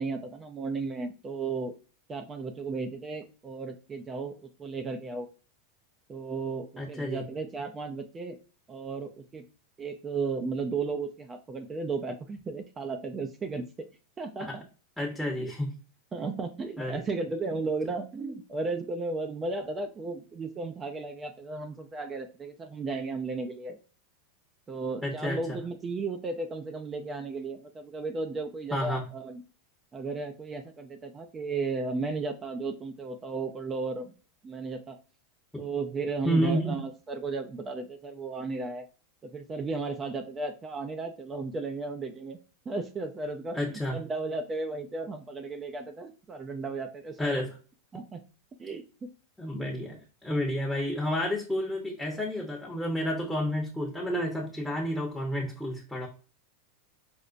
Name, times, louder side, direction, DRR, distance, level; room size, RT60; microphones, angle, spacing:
voice 1, 0.0-1.7 2.1-5.3 6.1-8.4 8.7-9.4 9.8-13.6 14.2-14.6 15.4-15.5 16.1-23.8 24.7-29.4 29.9-34.1 34.4-35.0 35.6-38.8 39.3-42.4 42.7-47.2 47.9-48.2 48.6-48.9, right 3 dB, 25° right, 6 dB, 0.4 m, -34 dB
voice 2, 6.8-7.2 14.5-14.6 15.0-15.7 16.8-17.0 25.0-25.4 28.7-29.0 36.2-36.8 43.5-44.0 47.2-47.5 49.4-56.1, equal, ahead, -1 dB, 0.8 m, -30 dB
5.1 x 2.0 x 2.5 m, 0.36 s
hypercardioid pair, 110°, 0 cm